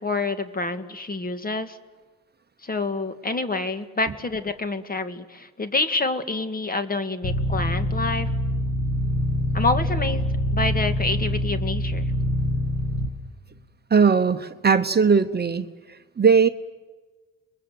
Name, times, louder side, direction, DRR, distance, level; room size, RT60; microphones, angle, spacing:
voice 1, 0.0-1.8 2.6-8.3 9.5-10.2 10.5-12.0, left 3 dB, 30° left, 9 dB, 1.9 m, -27 dB
sound 1, 7.2-13.1, left 1 dB, 50° left, 6.9 m, -25 dB
voice 2, 13.9-15.6 16.2-16.5, right 5 dB, 30° right, 9 dB, 1.0 m, -18 dB
29.5 x 22.0 x 7.9 m, 1.3 s
cardioid pair, 90°, 31 cm